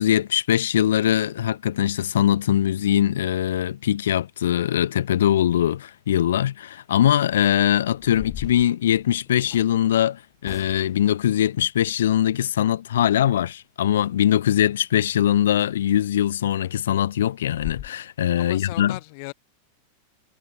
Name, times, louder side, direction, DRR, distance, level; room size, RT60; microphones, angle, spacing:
voice 1, 0.0-19.0, left 11 dB, 80° left, 1.0 m, -22 dB
sound 1, 7.9-9.7 10.4-11.1 15.6-15.7 16.2-16.3 16.7-16.8 17.1-17.2 17.5-17.9, left 11 dB, 35° left, 2.8 m, -39 dB
voice 2, 18.4-19.3, left 35 dB, 55° left, 5.5 m, -36 dB
hypercardioid pair, 115°, 0 cm